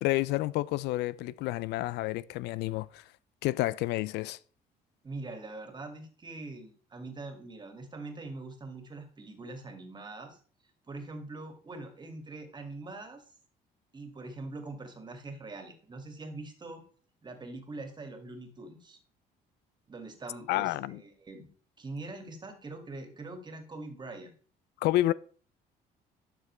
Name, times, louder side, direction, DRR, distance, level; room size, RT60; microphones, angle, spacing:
voice 1, 0.0-3.0 3.4-4.4 20.5-21.0 24.8-25.1, left 17 dB, 80° left, 0.4 m, -29 dB
voice 2, 5.0-10.4 10.9-13.2 13.9-16.8 17.2-19.0 19.9-21.5 21.8-24.3, right 2 dB, 25° right, 2.0 m, -43 dB
12.0 x 6.1 x 3.2 m
cardioid pair, 110°, 17 cm